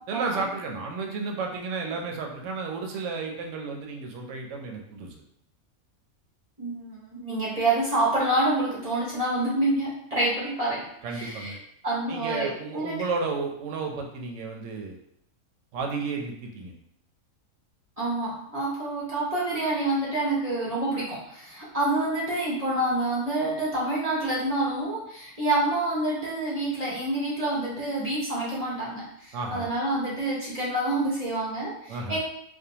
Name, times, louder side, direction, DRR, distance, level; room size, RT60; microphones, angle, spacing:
voice 1, 0.1-5.1 11.0-11.6 12.1-15.0 15.7-16.7 29.3-29.7 31.9-32.2, right 4 dB, 70° right, 2 dB, 0.8 m, -32 dB
voice 2, 6.6-11.5 11.8-13.0 18.0-32.2, right 2 dB, 45° right, -6 dB, 0.5 m, -27 dB
2.5 x 2.2 x 2.8 m, 0.76 s
omnidirectional pair, 1.5 m